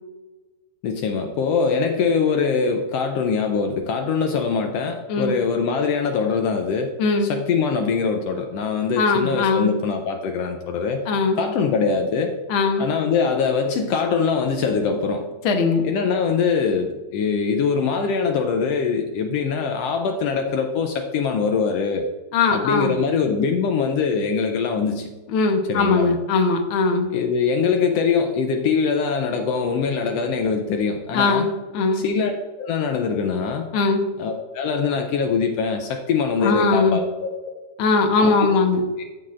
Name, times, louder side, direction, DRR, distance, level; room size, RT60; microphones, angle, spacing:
voice 1, 0.8-6.9 7.2-11.1 11.4-12.4 12.8-15.3 15.8-22.1 22.5-25.1 25.7-26.1 27.1-31.5 31.9-32.3 32.6-33.7 34.2-37.3 38.2-38.5, left 5 dB, 85° left, 4 dB, 1.4 m, -23 dB
voice 2, 5.1-5.4 7.0-7.3 8.9-9.7 11.1-11.4 12.5-12.9 15.4-15.8 22.3-22.9 25.3-27.1 31.1-32.1 33.7-34.0 36.4-37.0 37.8-38.8, left 4 dB, 65° left, 4 dB, 1.3 m, -20 dB
14.0 x 6.0 x 2.5 m, 1.2 s
omnidirectional pair, 3.5 m